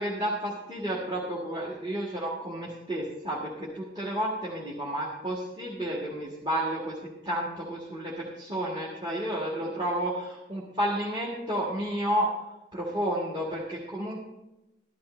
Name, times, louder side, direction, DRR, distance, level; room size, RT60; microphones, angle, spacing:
voice 1, 0.0-7.0 7.3-12.3 12.7-14.2, right 1 dB, 25° right, -5 dB, 1.8 m, -31 dB
13.5 x 12.0 x 3.3 m, 0.97 s
head